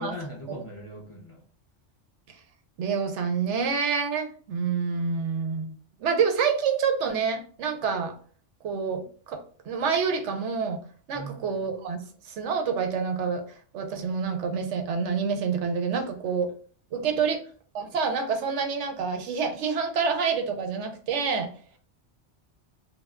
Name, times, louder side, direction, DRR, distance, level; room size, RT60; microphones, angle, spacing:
voice 1, 0.0-1.4 11.1-11.7 17.1-17.4, left 1 dB, 40° left, -3 dB, 0.4 m, -40 dB
voice 2, 2.8-5.7 6.0-8.1 8.6-10.8 11.1-12.0 12.3-13.4 13.7-16.5 16.9-17.4 17.7-21.5, right 5 dB, 80° right, 5 dB, 0.9 m, -27 dB
2.3 x 2.1 x 3.5 m, 0.43 s
omnidirectional pair, 1.2 m